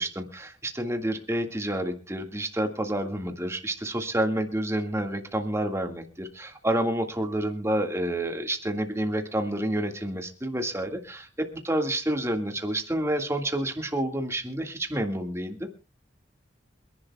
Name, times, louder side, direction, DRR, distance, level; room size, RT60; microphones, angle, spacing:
voice 1, 0.0-15.7, right 1 dB, 15° right, 5 dB, 1.8 m, -29 dB
27.0 x 11.0 x 2.3 m, 0.31 s
head